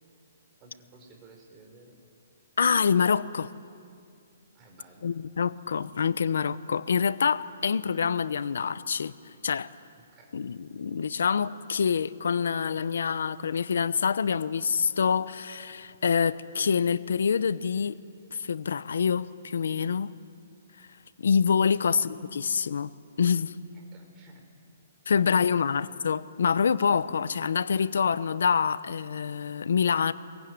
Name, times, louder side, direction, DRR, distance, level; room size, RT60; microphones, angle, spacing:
voice 1, 0.6-2.0 4.5-5.1 10.1-10.4 21.6-21.9 23.7-24.5 25.1-25.4, right 3 dB, 20° right, 2 dB, 4.8 m, -54 dB
voice 2, 2.6-3.5 5.0-9.1 9.4-9.7 10.3-18.0 18.3-20.1 20.8-20.9 21.2-22.9 23.2-23.5 25.1-30.1, left 6 dB, 80° left, 15 dB, 0.9 m, -26 dB
27.5 x 22.5 x 9.6 m, 2.4 s
hypercardioid pair, 165°, 0 cm